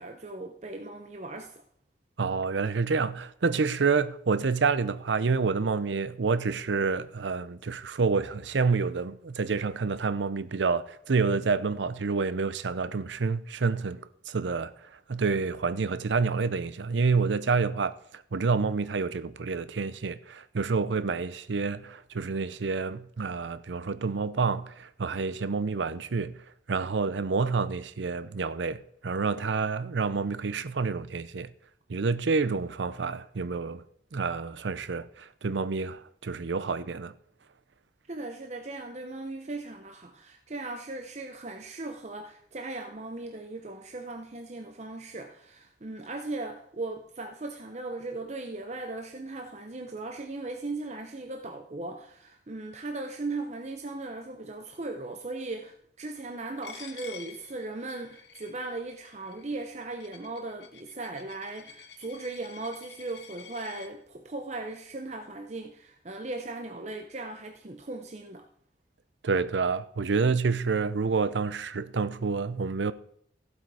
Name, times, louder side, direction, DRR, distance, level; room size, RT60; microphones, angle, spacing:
voice 1, 0.0-1.5 38.1-68.5, right 2 dB, 40° right, 0.7 m, -38 dB
voice 2, 2.2-31.5 31.9-33.8 34.1-37.1 69.2-72.9, right 4 dB, 85° right, 0.6 m, -28 dB
Coin (dropping), 56.6-63.9, left 7 dB, 75° left, 1.2 m, -49 dB
14.5 x 7.9 x 4.8 m
head